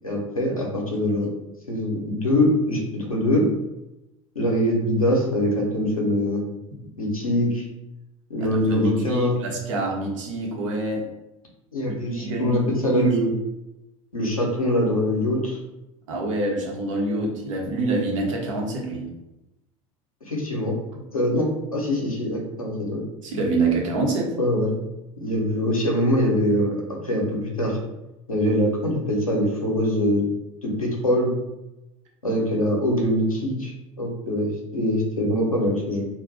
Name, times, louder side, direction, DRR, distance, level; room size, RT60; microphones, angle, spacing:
voice 1, 0.0-1.3 1.7-3.4 4.3-6.5 7.0-7.7 8.3-9.4 11.7-13.3 14.1-15.6 20.2-20.8 21.1-23.0 24.4-24.8 25.2-26.8 27.0-27.8 28.3-30.3 30.6-31.3 32.2-36.1, left 1 dB, 90° left, -1 dB, 0.7 m, -23 dB
voice 2, 8.4-11.1 11.8-12.6 12.9-13.2 16.1-19.1 23.2-24.3, right 2 dB, 65° right, -1 dB, 0.9 m, -26 dB
2.5 x 2.2 x 3.6 m, 0.94 s
figure-of-eight pair, 75°, 18 cm